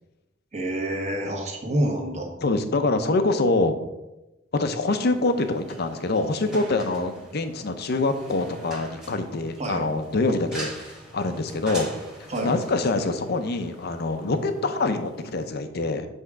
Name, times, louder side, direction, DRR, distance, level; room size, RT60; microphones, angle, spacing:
voice 1, 0.5-2.3 9.6-9.8 12.3-12.5, right 1 dB, 35° right, 1 dB, 1.2 m, -27 dB
voice 2, 2.4-3.8 4.5-11.9 12.4-16.1, left 2 dB, 55° left, 8 dB, 0.6 m, -25 dB
sound 1, 5.0-15.5, right 1 dB, 5° right, 1.3 m, -43 dB
7.9 x 3.6 x 4.8 m, 0.98 s
head